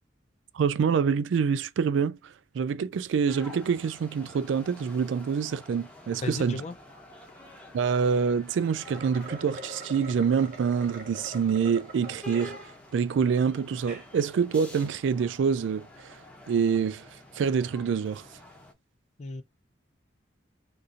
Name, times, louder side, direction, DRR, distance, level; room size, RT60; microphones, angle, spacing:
voice 1, 0.5-6.6 7.7-12.6 12.9-16.1 16.5-17.1 17.4-18.3, right 6 dB, 80° right, 0.3 m, -26 dB
sound 1, 3.3-18.7, left 1 dB, 5° left, 0.8 m, -49 dB
voice 2, 6.2-6.8 19.2-19.4, left 2 dB, 35° left, 0.4 m, -34 dB
sound 2, 8.8-12.6 13.1-13.2 13.7-14.1, right 1 dB, 45° right, 1.0 m, -43 dB
2.7 x 2.6 x 3.6 m
head